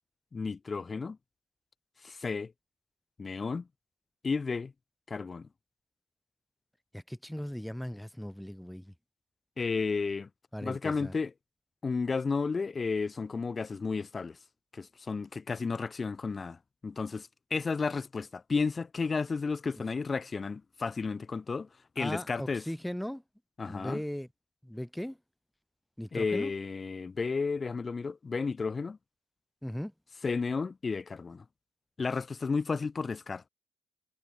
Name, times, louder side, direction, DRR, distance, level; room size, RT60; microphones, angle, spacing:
voice 1, 0.3-1.2 2.0-2.5 3.2-3.7 4.2-4.7 5.1-5.5 9.6-10.3 10.6-11.3 11.8-14.4 14.7-16.6 16.8-21.7 22.0-22.6 23.6-24.0 26.1-29.0 30.2-31.4 32.0-33.4, left 4 dB, 35° left, 3.8 m, -32 dB
voice 2, 6.9-8.9 10.5-11.1 22.0-23.2 23.7-24.3 24.6-25.2 26.0-26.5 29.6-29.9, equal, 5° left, 7.2 m, -38 dB
supercardioid pair, 60°, 0 cm